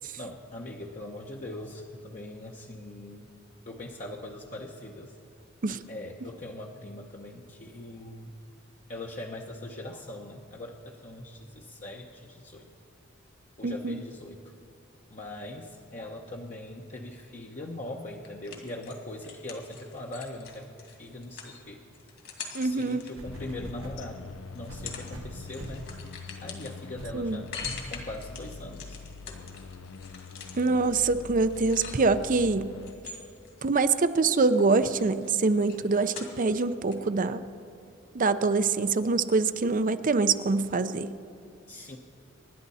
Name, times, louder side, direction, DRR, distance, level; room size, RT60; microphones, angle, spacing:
voice 1, 0.2-3.3 3.7-5.2 5.9-8.3 8.9-12.7 13.6-14.5 15.1-21.8 22.6-25.8 26.4-27.5 27.9-29.0 41.7-42.0, left 1 dB, 40° left, -1 dB, 0.9 m, -41 dB
voice 2, 13.6-14.0 22.5-23.0 27.1-27.4 30.6-32.7 33.6-37.4 38.1-41.1, right 3 dB, 40° right, 11 dB, 0.6 m, -25 dB
sound 1, 18.2-24.1 24.6-25.1 25.4-32.3 32.8-34.1 34.4-36.6 36.9-37.0, left 6 dB, 55° left, 2.4 m, -44 dB
sound 2, 22.7-22.8 23.2-24.1 24.7-25.9 26.4-26.6 27.0-27.2 27.6-27.9 28.6-28.7, right 1 dB, 80° right, 1.4 m, -42 dB
sound 3, 23.2-32.9, left 4 dB, 75° left, 0.6 m, -45 dB
26.0 x 11.5 x 4.2 m, 2.8 s
head